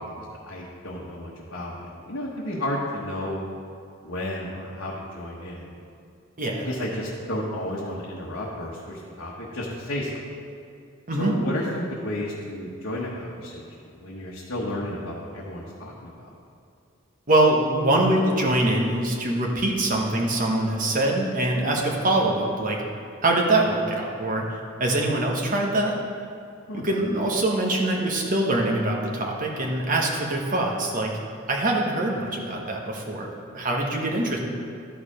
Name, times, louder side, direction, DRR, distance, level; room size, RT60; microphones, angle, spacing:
voice 1, 0.0-3.4 4.0-5.7 6.6-10.2 11.2-16.3 26.7-26.8, left 1 dB, 65° left, -5 dB, 1.1 m, -32 dB
voice 2, 6.4-6.7 11.1-11.4 17.3-22.8 23.2-25.9 26.7-31.1 31.5-33.3 33.5-34.4, right 1 dB, 40° right, -1 dB, 1.1 m, -23 dB
12.5 x 4.8 x 5.0 m, 2.5 s
head